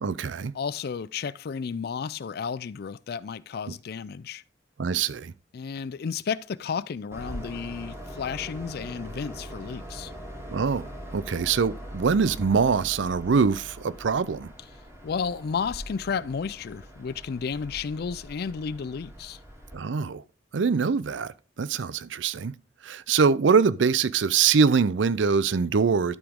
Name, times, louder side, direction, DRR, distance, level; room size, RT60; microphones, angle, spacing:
voice 1, 0.0-0.5 3.7-3.8 4.8-5.3 10.5-14.5 19.7-20.2 20.5-22.5 22.8-26.2, right 5 dB, 75° right, 0.5 m, -24 dB
voice 2, 0.5-4.4 5.5-10.1 15.0-19.4, left 6 dB, 55° left, 0.4 m, -32 dB
Train, 7.1-19.7, equal, 15° right, 2.6 m, -42 dB
12.0 x 5.0 x 3.6 m
head